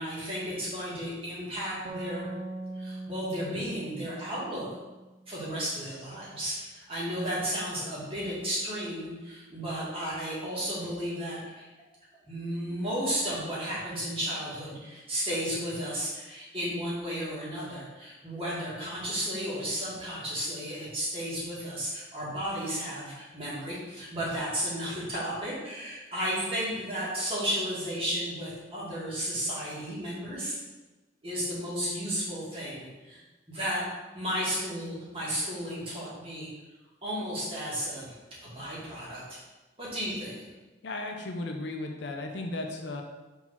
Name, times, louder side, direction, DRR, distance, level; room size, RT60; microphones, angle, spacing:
voice 1, 0.0-2.3 2.8-4.7 5.3-11.7 12.3-30.5 31.2-33.2 33.5-33.8 34.1-36.5 37.0-38.2 38.4-39.4 39.8-40.3, equal, 30° right, -7 dB, 2.1 m, -33 dB
sound 1, 1.8-5.4, right 2 dB, 45° right, 0.4 m, -41 dB
voice 2, 40.8-43.0, left 2 dB, 60° left, 3 dB, 0.6 m, -35 dB
4.7 x 4.0 x 5.6 m, 1.1 s
head